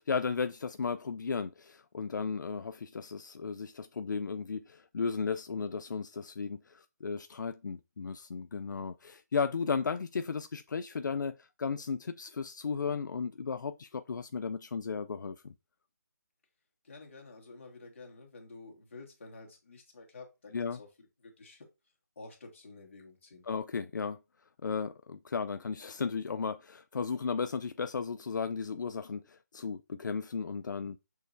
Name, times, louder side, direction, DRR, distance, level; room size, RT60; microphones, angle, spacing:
voice 1, 0.0-15.5 20.5-20.8 23.4-24.2 24.6-31.0, left 5 dB, 85° left, 0.4 m, -35 dB
voice 2, 16.8-20.9 21.2-21.7 22.1-23.5, left 3 dB, 40° left, 1.5 m, -50 dB
6.3 x 3.2 x 2.6 m
hypercardioid pair, 175°, 10 cm